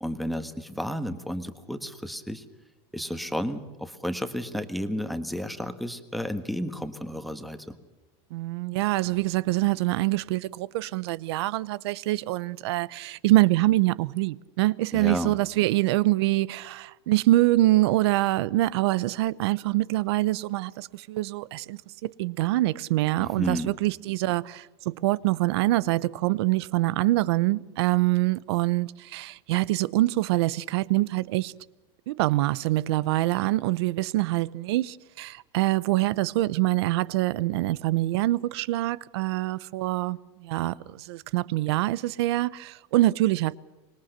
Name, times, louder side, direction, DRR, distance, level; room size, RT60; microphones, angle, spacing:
voice 1, 0.0-2.4 2.9-7.8 14.9-15.3 23.2-23.7, equal, ahead, 1.4 m, -32 dB
voice 2, 8.3-31.5 32.1-43.6, right 17 dB, 70° right, 0.8 m, -25 dB
25.5 x 21.0 x 6.7 m
supercardioid pair, 160°, 14 cm